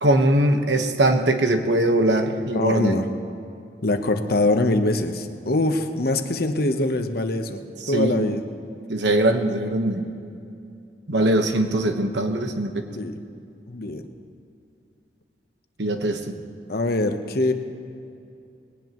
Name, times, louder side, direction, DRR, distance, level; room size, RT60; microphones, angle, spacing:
voice 1, 0.0-3.0 7.8-8.3 8.9-10.1 11.1-12.8 15.8-16.4, right 1 dB, 90° right, 5 dB, 1.2 m, -21 dB
voice 2, 2.5-3.1 3.8-7.6 7.9-8.4 12.9-13.2 13.7-14.0 16.7-17.5, left 2 dB, 60° left, 7 dB, 1.0 m, -23 dB
21.0 x 18.0 x 3.1 m, 2.6 s
head